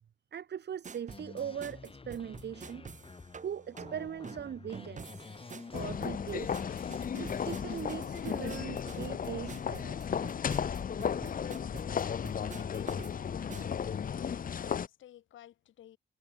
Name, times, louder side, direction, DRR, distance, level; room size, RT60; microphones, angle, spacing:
voice 1, 0.3-2.9 3.4-5.3 5.7-6.6 7.1-10.2, right 8 dB, 60° right, 6.4 m, -40 dB
sound 1, 0.8-13.8, right 5 dB, 40° right, 3.5 m, -48 dB
sound 2, 1.1-7.8, left 4 dB, 25° left, 3.4 m, -48 dB
sound 3, 5.7-14.9, left 7 dB, 45° left, 1.3 m, -35 dB
voice 2, 12.5-16.0, left 12 dB, 75° left, 4.1 m, -53 dB
cardioid pair, 90°, 20 cm